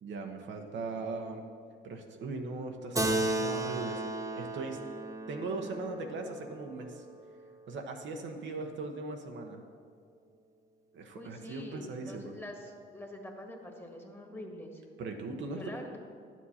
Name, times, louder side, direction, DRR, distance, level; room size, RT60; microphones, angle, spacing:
voice 1, 0.0-1.4 1.8-4.8 5.3-7.0 7.7-9.6 10.9-12.3 15.0-15.6, right 3 dB, 70° right, 3 dB, 1.0 m, -39 dB
Keyboard (musical), 3.0-7.8, right 2 dB, 15° right, 0.9 m, -35 dB
voice 2, 11.1-14.8 15.5-16.0, left 1 dB, 10° left, 2 dB, 1.5 m, -45 dB
11.0 x 7.4 x 4.3 m, 2.2 s
cardioid pair, 90°, 20 cm